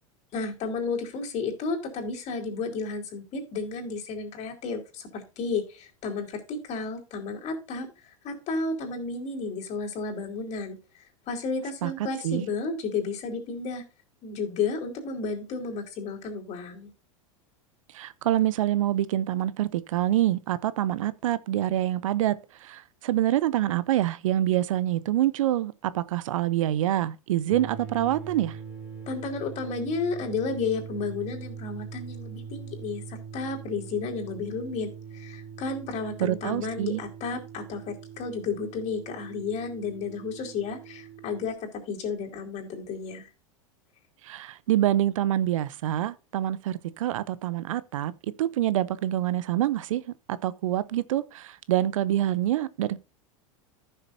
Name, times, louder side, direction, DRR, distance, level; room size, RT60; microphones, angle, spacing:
voice 1, 0.3-7.9 8.2-10.8 11.3-13.8 14.2-16.9 29.1-43.3, left 4 dB, 40° left, 4.3 m, -32 dB
voice 2, 17.9-28.6 36.2-37.0 44.2-48.1 48.4-53.0, right 13 dB, 75° right, 0.7 m, -26 dB
sound 1, 27.5-41.6, right 6 dB, 5° right, 4.0 m, -42 dB
15.0 x 6.7 x 2.7 m
hypercardioid pair, 95°, 17 cm